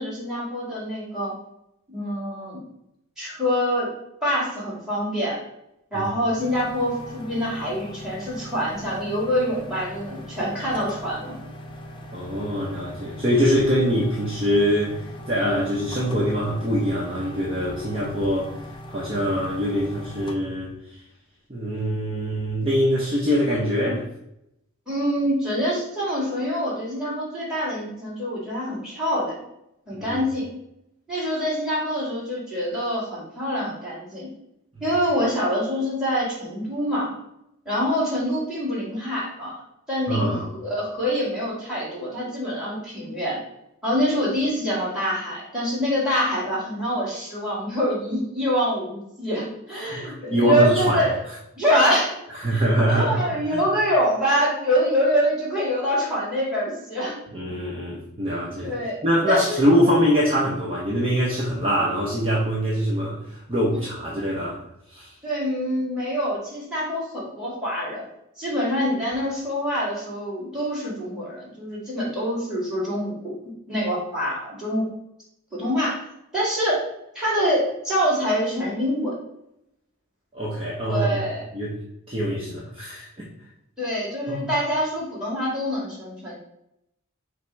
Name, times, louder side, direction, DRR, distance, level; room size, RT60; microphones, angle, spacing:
voice 1, 0.0-1.3 1.9-2.6 3.2-3.9 4.2-5.4 5.9-11.3 24.9-29.4 29.9-30.5 31.1-34.3 34.8-37.1 37.7-39.6 39.9-43.4 43.8-51.2 51.6-52.2 52.5-57.2 58.6-59.0 59.3-59.6 65.2-68.1 68.4-74.9 75.5-76.0 76.3-76.8 77.1-79.2 80.9-81.5 83.8-86.3, equal, 5° right, -6 dB, 1.8 m, -25 dB
sound 1, 6.4-20.4, equal, 20° left, 0.4 m, -40 dB
voice 2, 12.1-18.6 18.9-20.7 21.5-24.1 30.0-30.2 40.1-40.4 49.8-51.1 52.4-53.2 53.5-53.6 57.3-58.7 59.0-64.6 64.9-65.1 80.3-81.1 81.5-81.7 82.1-83.3 84.3-84.4, equal, 25° right, -5 dB, 0.7 m, -23 dB
5.7 x 2.0 x 4.5 m, 0.82 s
head